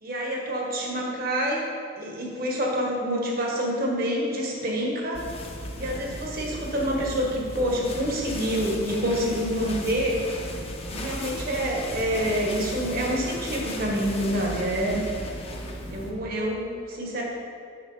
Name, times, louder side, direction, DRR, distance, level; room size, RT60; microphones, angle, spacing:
voice 1, 0.0-1.6 2.0-5.2 5.7-10.2 10.9-15.0 15.9-17.2, equal, 50° right, -1 dB, 1.4 m, -27 dB
sound 1, 5.1-16.1, left 1 dB, 30° left, 0.8 m, -36 dB
6.6 x 6.3 x 4.8 m, 2.5 s
head